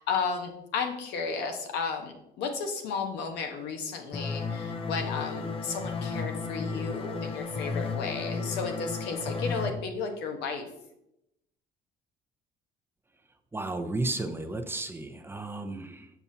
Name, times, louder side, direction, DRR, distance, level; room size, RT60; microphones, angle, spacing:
voice 1, 0.0-10.7, left 5 dB, 85° left, 4 dB, 1.0 m, -33 dB
sound 1, 4.1-9.7, left 4 dB, 35° left, 0.6 m, -33 dB
voice 2, 13.5-16.1, right 2 dB, 15° right, 7 dB, 0.6 m, -33 dB
7.0 x 5.8 x 2.7 m, 0.83 s
cardioid pair, 110°, 17 cm